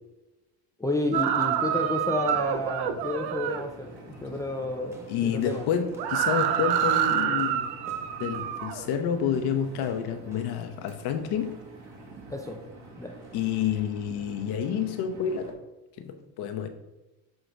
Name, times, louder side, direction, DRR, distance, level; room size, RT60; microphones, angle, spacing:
voice 1, 0.8-4.0 4.2-5.6 12.3-12.6 13.0-13.2, left 2 dB, 10° left, 3 dB, 0.4 m, -31 dB
sound 1, 1.1-3.6 6.0-8.8, right 10 dB, 70° right, 0.7 m, -27 dB
Engine, 1.2-15.5, right 2 dB, 40° right, 1.8 m, -47 dB
sound 2, 4.9-10.7, left 5 dB, 5° right, 1.0 m, -49 dB
voice 2, 5.1-7.7 8.2-11.5 13.3-15.5 16.0-16.7, left 8 dB, 65° left, 7 dB, 0.9 m, -29 dB
6.7 x 3.8 x 4.5 m, 1.0 s
cardioid pair, 130°, 41 cm